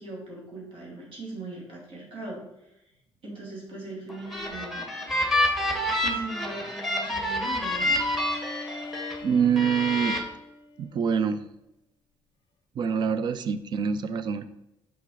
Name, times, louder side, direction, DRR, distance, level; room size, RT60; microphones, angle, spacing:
voice 1, 0.0-2.7 3.2-4.8 6.0-8.0, right 2 dB, 65° right, -3 dB, 2.4 m, -39 dB
sound 1, 4.1-9.2 9.6-10.2, left 1 dB, ahead, 1.4 m, -28 dB
Bowed string instrument, 7.6-11.4, left 3 dB, 50° left, 0.5 m, -42 dB
voice 2, 9.2-10.1 10.8-11.5 12.8-14.5, right 7 dB, 50° right, 13 dB, 0.5 m, -25 dB
6.0 x 4.9 x 3.9 m, 0.88 s
cardioid pair, 115°, 10 cm